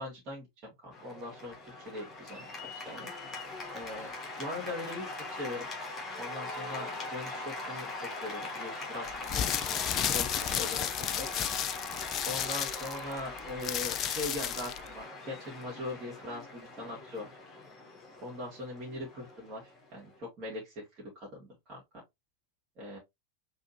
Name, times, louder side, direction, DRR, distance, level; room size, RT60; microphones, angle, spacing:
voice 1, 0.0-3.1 3.7-5.7 6.2-9.5 10.0-10.9 11.2-11.3 12.2-17.3 18.2-21.8 22.8-23.0, left 2 dB, 35° right, 2.1 m, -41 dB
Cheering / Applause, 0.9-20.2, left 2 dB, 15° left, 1.5 m, -41 dB
sound 1, 9.1-14.9, left 9 dB, 30° left, 0.4 m, -32 dB
5.4 x 3.4 x 2.7 m
figure-of-eight pair, 90°, 0 cm